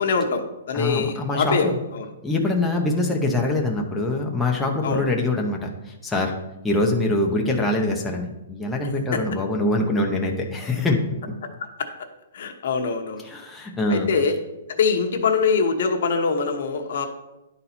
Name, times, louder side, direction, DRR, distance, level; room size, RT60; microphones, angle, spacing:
voice 1, 0.0-2.1 4.8-5.0 9.1-9.2 12.3-13.2 13.9-14.4 14.7-17.1, left 5 dB, 55° left, 5 dB, 0.9 m, -23 dB
voice 2, 0.7-1.8 2.2-5.7 6.0-6.3 6.6-11.0 13.2-14.1, left 2 dB, 5° left, -1 dB, 0.7 m, -24 dB
10.5 x 4.1 x 4.2 m, 0.98 s
hypercardioid pair, 170°, 0 cm